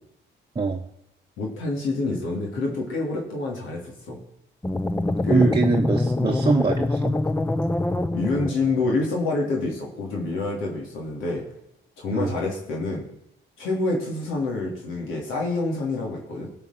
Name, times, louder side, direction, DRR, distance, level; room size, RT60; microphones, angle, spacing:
voice 1, 1.4-4.2 5.2-5.5 8.1-11.4 12.0-13.1 13.6-16.5, left 2 dB, 90° left, -1 dB, 3.1 m, -27 dB
sound 1, 4.6-8.9, left 2 dB, 10° left, 0.6 m, -25 dB
voice 2, 5.3-7.2 12.1-12.4, right 3 dB, 25° right, 0 dB, 1.1 m, -22 dB
16.5 x 5.7 x 5.8 m, 0.79 s
cardioid pair, 90°, 20 cm